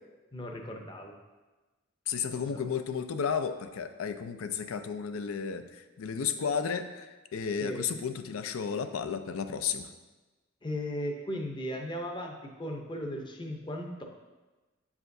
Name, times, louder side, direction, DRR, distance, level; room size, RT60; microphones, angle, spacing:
voice 1, 0.3-1.1 2.3-2.4 7.6-7.8 10.6-14.1, equal, 25° left, 2 dB, 0.6 m, -36 dB
voice 2, 2.1-9.9, left 6 dB, 85° left, 9 dB, 0.4 m, -33 dB
7.6 x 4.8 x 2.6 m, 1.2 s
head